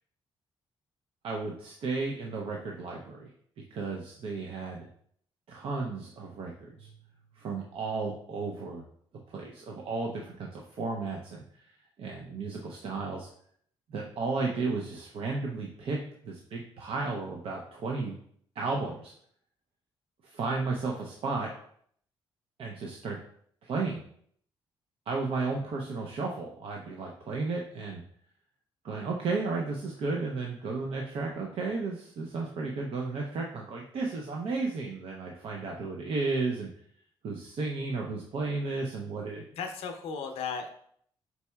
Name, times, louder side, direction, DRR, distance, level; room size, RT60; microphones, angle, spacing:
voice 1, 1.2-3.3 3.7-4.9 5.5-6.9 7.4-8.8 9.3-11.7 12.0-13.3 13.9-16.0 16.2-18.1 18.6-19.1 20.2-21.5 22.6-23.2 23.6-24.0 25.1-28.0 28.8-36.7 37.2-39.4, right 3 dB, 65° right, 0 dB, 0.5 m, -33 dB
voice 2, 39.5-40.7, left 6 dB, 85° left, 6 dB, 0.5 m, -35 dB
4.6 x 4.0 x 2.2 m, 0.64 s
cardioid pair, 85°, 10 cm